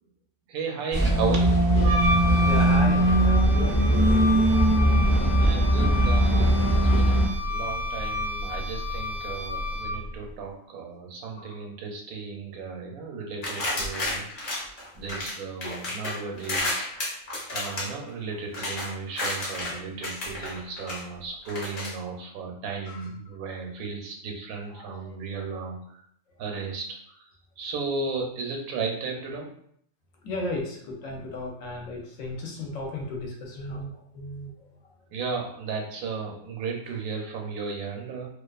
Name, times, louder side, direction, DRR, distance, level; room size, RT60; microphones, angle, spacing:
voice 1, 0.5-1.6 5.4-14.3 15.0-16.9 17.5-26.0 26.4-26.9 27.6-29.5 35.1-38.3, right 4 dB, 85° right, 1 dB, 1.1 m, -34 dB
sound 1, 0.9-7.3, right 1 dB, 10° left, 0.3 m, -20 dB
Wind instrument woodwind instrument, 1.8-10.1, left 1 dB, 60° right, 0.6 m, -30 dB
voice 2, 2.0-4.7 5.6-5.7 7.3-7.5 11.4-11.6 19.6-19.7 22.9-23.1 24.7-25.2 25.5-25.7 30.2-34.5, left 2 dB, 70° left, 0 dB, 0.9 m, -35 dB
sound 2, 13.4-15.3 15.6-19.8 20.0-21.0 21.4-21.9, left 2 dB, 45° left, 0.7 m, -31 dB
2.5 x 2.3 x 2.3 m, 0.67 s
omnidirectional pair, 1.5 m